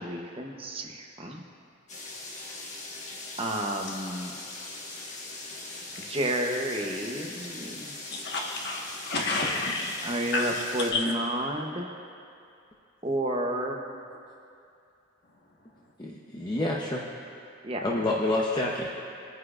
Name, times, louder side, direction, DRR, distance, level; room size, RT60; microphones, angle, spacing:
voice 1, 0.0-1.4 3.4-4.3 6.1-7.9 10.0-12.0 13.0-14.0 17.6-17.8, right 1 dB, 30° right, 1 dB, 0.9 m, -31 dB
sound 1, 1.9-10.9, left 2 dB, 40° left, 1.5 m, -41 dB
voice 2, 8.1-10.6 10.9-11.0, left 2 dB, 55° left, -1 dB, 1.5 m, -30 dB
voice 3, 16.0-17.1 17.8-18.9, left 2 dB, 20° left, -4 dB, 0.7 m, -28 dB
22.5 x 9.6 x 2.5 m, 2.5 s
head